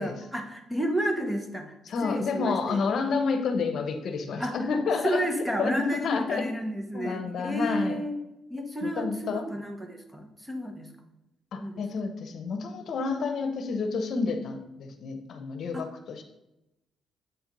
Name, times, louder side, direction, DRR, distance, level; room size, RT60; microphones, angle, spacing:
voice 1, 0.0-2.8 4.4-4.6 5.0-8.2 8.5-10.9 11.6-11.8 15.7-15.9, equal, 10° right, 5 dB, 1.2 m, -31 dB
voice 2, 1.9-5.2 5.6-6.5 6.9-8.0 8.8-9.4 11.5-16.2, left 4 dB, 65° left, 7 dB, 0.9 m, -30 dB
8.1 x 4.4 x 5.3 m, 0.92 s
cardioid pair, 90°, 0 cm